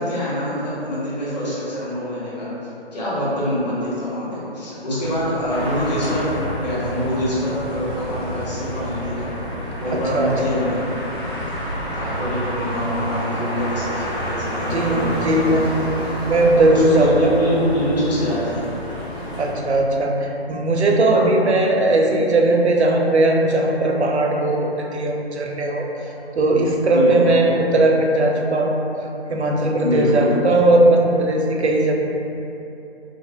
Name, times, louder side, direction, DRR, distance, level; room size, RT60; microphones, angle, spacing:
voice 1, 0.0-2.5 2.9-6.3 6.5-9.3 9.8-10.9 11.9-15.6 16.7-18.7 21.1-21.2 26.9-27.2 29.8-30.3, equal, 40° left, -10 dB, 1.0 m, -25 dB
sound 1, 5.0-13.3, equal, 25° right, 0.4 m, -36 dB
sound 2, 5.5-19.5, equal, 25° left, 0.6 m, -29 dB
voice 2, 9.9-10.3 14.5-16.0 16.2-17.3 19.3-25.9 26.4-28.8 29.3-31.9, right 2 dB, 80° right, 0 dB, 0.5 m, -18 dB
2.9 x 2.8 x 2.5 m, 2.9 s
figure-of-eight pair, 145°, 33 cm